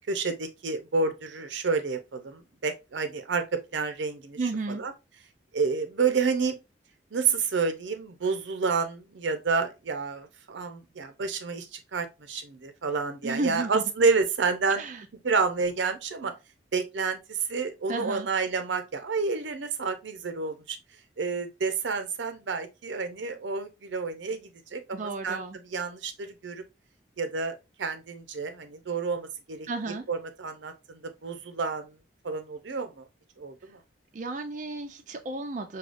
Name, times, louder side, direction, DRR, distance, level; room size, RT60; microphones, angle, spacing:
voice 1, 0.1-4.4 4.7-4.9 5.5-6.6 7.1-14.8 15.2-16.3 16.7-20.8 21.2-25.4 25.7-26.6 27.2-31.9 32.2-33.0 33.4-33.8, right 4 dB, 90° right, 0.6 m, -29 dB
voice 2, 4.4-4.8 13.2-13.8 14.7-15.1 17.9-18.3 24.9-25.6 29.7-30.0 34.1-35.8, right 3 dB, 45° right, 0.4 m, -33 dB
4.8 x 2.3 x 2.5 m
head